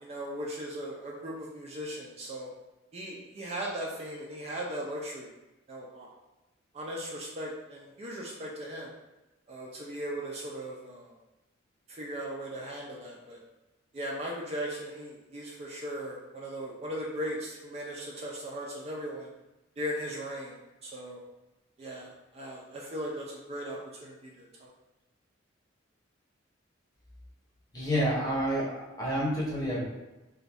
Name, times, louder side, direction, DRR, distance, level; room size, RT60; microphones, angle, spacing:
voice 1, 0.0-2.5 2.9-5.3 5.7-6.1 6.7-8.9 9.5-11.1 11.9-13.4 13.9-19.3 19.8-20.5 20.8-21.2 21.8-24.7, equal, 30° right, -3 dB, 0.4 m, -38 dB
voice 2, 27.7-29.8, equal, 20° left, -5 dB, 0.8 m, -29 dB
2.5 x 2.3 x 3.3 m, 1.0 s
head